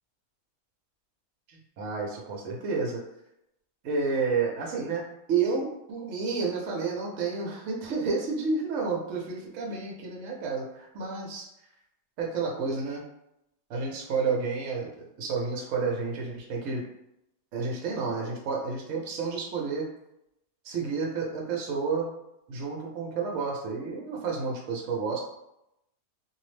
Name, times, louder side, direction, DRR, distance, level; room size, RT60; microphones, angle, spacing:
voice 1, 1.5-3.0 3.8-11.5 12.2-13.0 13.7-16.8 17.5-19.9 20.6-22.1 22.5-25.2, right 4 dB, 60° right, -1 dB, 0.9 m, -30 dB
2.7 x 2.0 x 3.1 m, 0.83 s
omnidirectional pair, 1.7 m